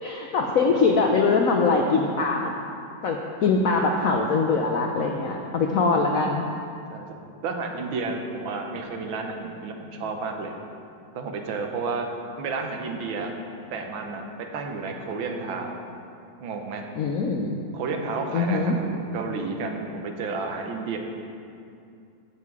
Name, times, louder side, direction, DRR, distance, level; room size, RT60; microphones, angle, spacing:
voice 1, 0.0-2.5 3.0-6.5 17.0-17.6 18.3-18.8, left 4 dB, 75° left, 2 dB, 0.8 m, -22 dB
voice 2, 7.4-10.5 11.2-12.1 12.4-13.3 13.7-15.8 16.4-16.8 17.7-21.0, right 4 dB, 80° right, 3 dB, 1.7 m, -31 dB
15.0 x 5.6 x 4.7 m, 2.5 s
omnidirectional pair, 2.2 m